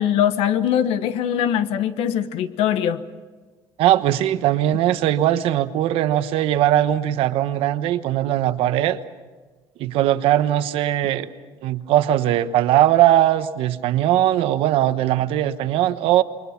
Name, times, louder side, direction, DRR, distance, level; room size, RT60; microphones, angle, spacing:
voice 1, 0.0-3.0, left 10 dB, 70° left, 12 dB, 1.2 m, -21 dB
voice 2, 3.8-9.0 9.8-11.3 11.6-16.2, right 12 dB, 65° right, 11 dB, 1.1 m, -19 dB
28.5 x 23.0 x 5.9 m, 1.3 s
cardioid pair, 175°, 10 cm